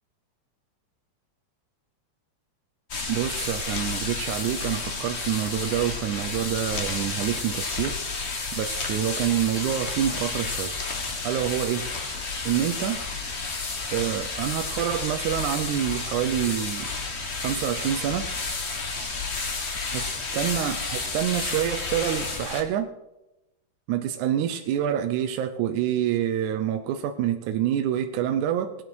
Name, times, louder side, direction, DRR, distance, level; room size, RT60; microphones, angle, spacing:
sound 1, 2.9-22.6, left 4 dB, 60° left, 0.7 m, -31 dB
voice 1, 3.1-8.0 8.5-10.8 11.2-11.9 12.5-13.0 13.9-16.9 17.4-18.3 19.9-20.0 20.3-22.9 23.9-28.8, right 11 dB, 80° right, 5 dB, 2.1 m, -27 dB
18.0 x 8.8 x 4.7 m, 0.94 s
omnidirectional pair, 3.5 m